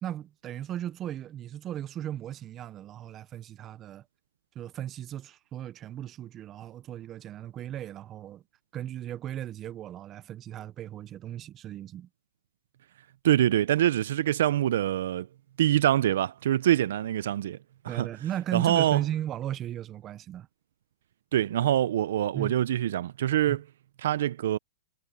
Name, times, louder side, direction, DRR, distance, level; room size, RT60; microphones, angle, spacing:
voice 1, 0.0-4.0 4.5-8.4 8.7-12.1 17.9-20.5 22.3-22.5 23.5-23.6, right 11 dB, 25° right, 0.7 m, -36 dB
voice 2, 13.2-15.3 15.6-17.6 17.8-18.1 18.5-19.0 21.3-23.6 24.0-24.6, right 12 dB, 65° right, 0.6 m, -25 dB
hypercardioid pair, 140°, 0 cm